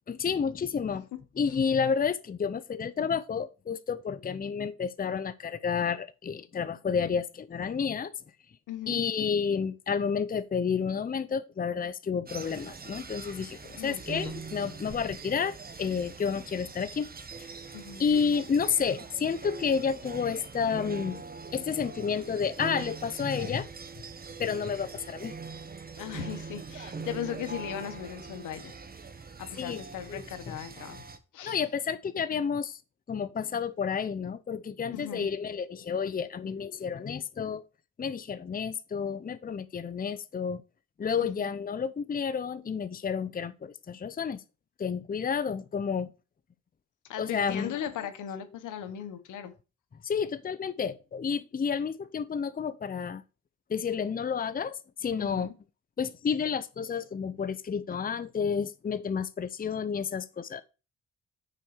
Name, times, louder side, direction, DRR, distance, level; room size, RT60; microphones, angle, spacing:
voice 1, 0.1-1.0 1.4-8.1 8.9-17.1 17.4-17.5 18.0-21.2 21.5-23.7 24.4-25.3 29.6-29.8 30.1-30.6 31.4-32.8 33.1-37.6 38.0-40.6 41.0-44.4 44.8-46.1 47.2-47.8 50.0-53.2 53.7-55.5 56.0-60.6, left 6 dB, 30° left, 0.7 m, -30 dB
voice 2, 8.7-9.0 13.8-14.3 17.7-18.0 25.9-28.7 29.4-31.0 31.3-31.6 34.9-35.3 41.2-41.5 47.1-49.5 55.2-55.5, left 10 dB, 85° left, 1.2 m, -38 dB
sound 1, 12.3-31.2, right 4 dB, 30° right, 1.1 m, -43 dB
6.5 x 4.4 x 6.6 m
cardioid pair, 80°, 30 cm